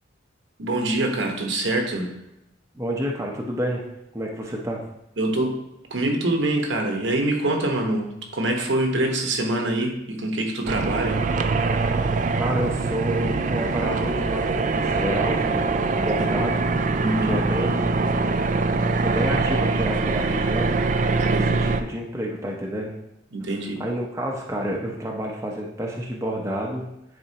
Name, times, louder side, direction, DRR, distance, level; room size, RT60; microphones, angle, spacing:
voice 1, 0.6-2.1 5.2-5.6 5.9-11.2 11.7-12.1 16.2-16.3 17.0-17.4 21.3-21.5 23.3-23.8, right 1 dB, 70° right, 3 dB, 1.1 m, -25 dB
voice 2, 2.7-3.9 4.1-4.8 12.4-16.7 17.2-17.9 19.0-20.8 21.3-23.0 23.8-26.9, equal, 15° right, -1 dB, 0.7 m, -29 dB
sound 1, 10.7-21.8, right 3 dB, 40° right, 0.4 m, -23 dB
9.9 x 4.2 x 2.9 m, 0.84 s
head